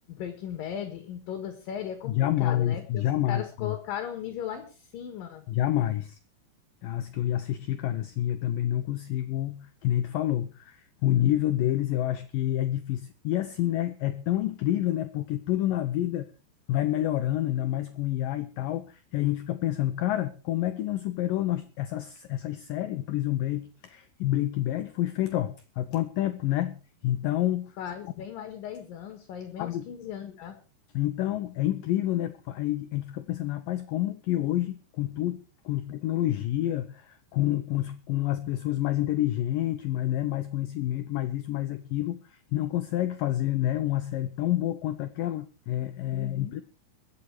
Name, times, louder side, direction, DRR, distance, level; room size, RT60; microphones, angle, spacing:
voice 1, 0.0-5.4 27.8-30.6 46.1-46.6, left 9 dB, 60° left, 8 dB, 2.9 m, -37 dB
voice 2, 2.1-3.8 5.5-6.2 6.8-16.3 16.7-27.8 29.6-29.9 30.9-46.6, left 13 dB, 90° left, 11 dB, 1.9 m, -28 dB
22.5 x 8.5 x 4.8 m, 0.33 s
omnidirectional pair, 5.0 m